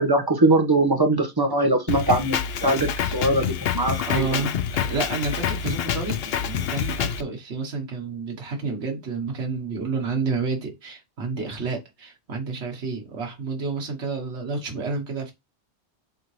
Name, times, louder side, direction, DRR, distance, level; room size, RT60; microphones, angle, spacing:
voice 1, 0.0-4.4, right 2 dB, 20° right, 1.4 m, -22 dB
Drum kit, 1.9-7.2, left 8 dB, 70° left, 0.8 m, -27 dB
voice 2, 4.0-15.3, right 4 dB, 80° right, 1.6 m, -30 dB
7.9 x 3.8 x 3.2 m
omnidirectional pair, 1.1 m